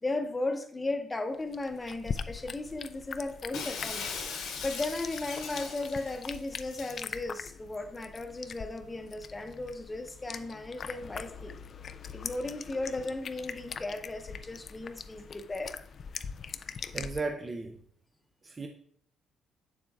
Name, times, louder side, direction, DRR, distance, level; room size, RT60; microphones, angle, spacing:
voice 1, 0.0-4.1 4.6-11.6 12.1-15.8, left 2 dB, 20° left, 0.8 m, -36 dB
sound 1, 1.3-17.2, left 6 dB, 50° left, 0.3 m, -42 dB
Shatter, 3.5-7.0, left 5 dB, 85° left, 1.5 m, -39 dB
voice 2, 16.9-17.8 18.4-18.7, right 3 dB, 30° right, 0.5 m, -35 dB
7.5 x 7.1 x 2.3 m
cardioid pair, 90°, 0 cm